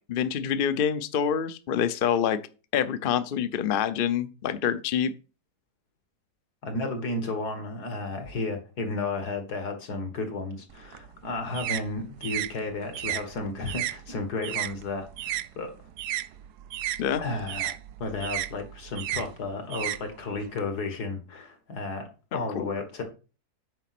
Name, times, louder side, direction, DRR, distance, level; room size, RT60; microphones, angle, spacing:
voice 1, 0.1-2.4 2.7-5.1 17.0-17.2 22.3-22.7, left 8 dB, 55° left, 12 dB, 0.6 m, -26 dB
voice 2, 6.6-15.7 17.2-23.0, left 3 dB, 80° left, 6 dB, 2.4 m, -33 dB
sound 1, 10.7-15.5 15.8-20.6, right 13 dB, 80° right, 1.1 m, -34 dB
9.0 x 5.0 x 5.9 m, 0.34 s
omnidirectional pair, 1.7 m